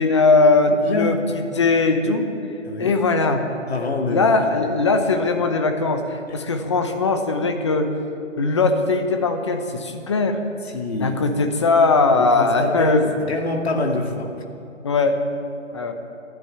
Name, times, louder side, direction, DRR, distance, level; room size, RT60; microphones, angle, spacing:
voice 1, 0.0-2.2 2.8-3.5 4.1-7.9 8.4-10.4 10.9-13.0 14.8-15.2 15.7-15.9, left 3 dB, 25° left, 6 dB, 0.9 m, -19 dB
voice 2, 0.7-1.2 2.6-3.0 3.7-4.7 10.7-11.2 12.2-14.3, left 2 dB, 55° left, 2 dB, 2.4 m, -25 dB
13.0 x 11.0 x 9.2 m, 2.8 s
hypercardioid pair, 170°, 38 cm